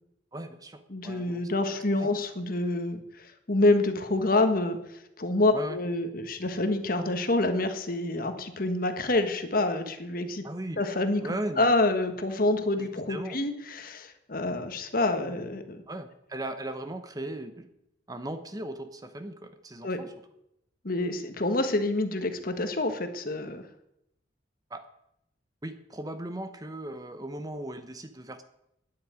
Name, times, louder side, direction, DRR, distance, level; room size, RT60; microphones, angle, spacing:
voice 1, 0.3-1.5 5.5-5.8 10.4-10.8 11.2-11.7 12.8-13.4 15.9-17.7 18.1-20.1 24.7-24.8 25.6-28.4, right 1 dB, 20° right, 9 dB, 0.9 m, -37 dB
voice 2, 0.9-4.8 5.2-10.4 10.8-11.2 11.6-15.8 19.8-20.0 20.8-23.6, left 2 dB, 50° left, 8 dB, 1.4 m, -27 dB
9.9 x 8.5 x 9.4 m, 0.82 s
head